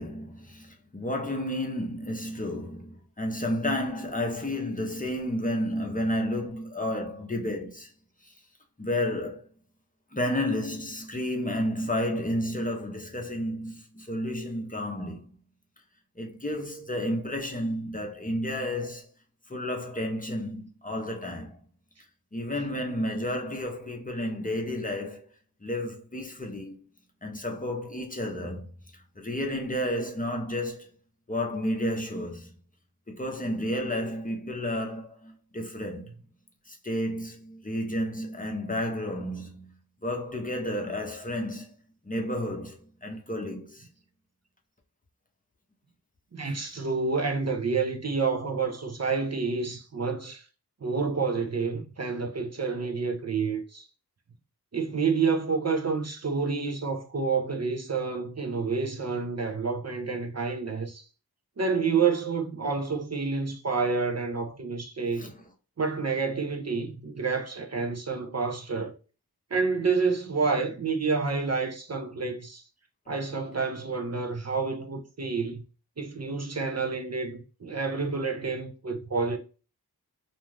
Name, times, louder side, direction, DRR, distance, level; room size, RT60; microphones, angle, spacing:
voice 1, 0.0-7.9 8.8-9.5 10.1-15.2 16.2-19.1 19.5-21.6 22.3-25.3 25.6-26.8 27.2-28.7 29.2-30.9 31.3-32.5 33.1-36.1 36.7-39.7 40.0-41.7 42.1-42.7 43.0-43.9 46.4-46.6 65.2-65.3, left 1 dB, 20° left, 0.6 m, -31 dB
voice 2, 46.3-50.5 50.8-53.9 54.7-61.0 61.6-65.3 65.8-68.9 69.5-72.6 73.1-75.6 76.0-79.4, right 4 dB, 45° right, 0.5 m, -29 dB
2.5 x 2.3 x 3.1 m
wide cardioid pair, 60°, 39 cm